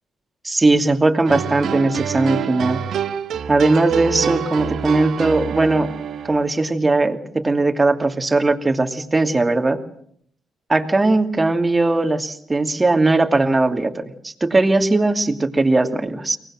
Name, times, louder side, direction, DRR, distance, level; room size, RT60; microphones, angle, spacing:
voice 1, 0.4-2.8 3.5-5.9 6.2-9.8 10.7-16.4, right 2 dB, 25° right, 6 dB, 2.6 m, -19 dB
sound 1, 1.2-6.4, right 8 dB, 70° right, 1.3 m, -26 dB
23.5 x 19.5 x 7.7 m, 0.65 s
supercardioid pair, 50°, 0 cm